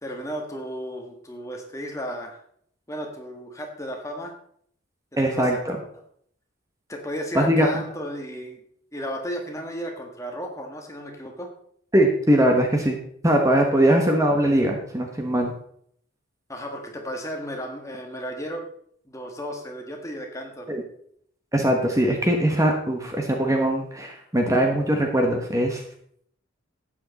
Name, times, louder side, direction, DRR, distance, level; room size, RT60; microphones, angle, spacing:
voice 1, 0.0-2.4 2.9-4.3 5.2-6.0 6.9-8.6 8.9-11.5 16.5-18.7 19.0-20.7, equal, 15° left, 2 dB, 1.6 m, -34 dB
voice 2, 5.2-5.8 7.3-7.8 11.9-13.0 13.2-15.5 20.7-20.8 21.5-25.8, right 1 dB, 15° right, 2 dB, 1.2 m, -21 dB
12.0 x 8.6 x 4.1 m, 0.65 s
head